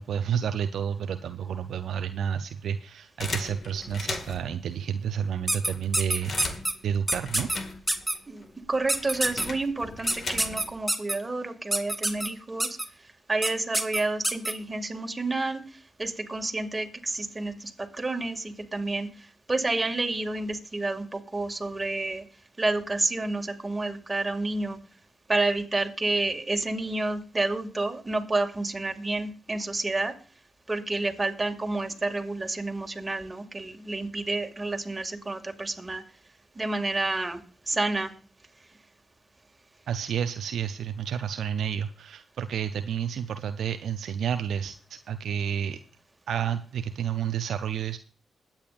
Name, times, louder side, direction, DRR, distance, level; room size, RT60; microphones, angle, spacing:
voice 1, 0.0-6.6 6.8-7.5 39.9-45.8 46.3-48.0, right 8 dB, 70° right, 9 dB, 0.5 m, -30 dB
sound 1, 3.2-4.6 5.2-5.3 5.5-8.2 8.4-10.8, left 3 dB, 55° left, 1.9 m, -37 dB
sound 2, 5.5-6.7 7.1-7.6 7.9-8.1 8.9-9.5 10.1-11.1 11.7-12.3 12.6-12.8 13.4-13.5 13.7-14.5, right 1 dB, 10° right, 1.8 m, -26 dB
voice 2, 8.3-12.7 13.3-15.6 16.0-22.2 22.6-24.8 25.3-30.1 30.7-36.0 36.6-37.4 37.7-38.1, right 2 dB, 25° right, 4 dB, 2.2 m, -29 dB
21.5 x 8.8 x 2.5 m, 0.40 s
hypercardioid pair, 45°, 0 cm